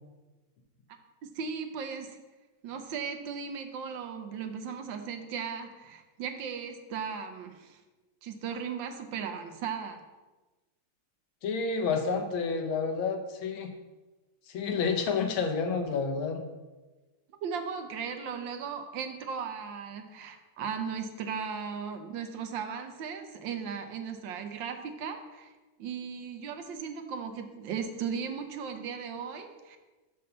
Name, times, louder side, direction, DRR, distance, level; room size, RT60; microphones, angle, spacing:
voice 1, 1.2-2.2 2.6-7.8 8.2-10.0 17.4-25.5 25.8-29.8, right 6 dB, 75° right, 6 dB, 1.4 m, -37 dB
voice 2, 11.4-13.7 14.5-16.4, left 5 dB, 85° left, 5 dB, 1.7 m, -29 dB
5.7 x 5.4 x 6.6 m, 1.2 s
omnidirectional pair, 2.2 m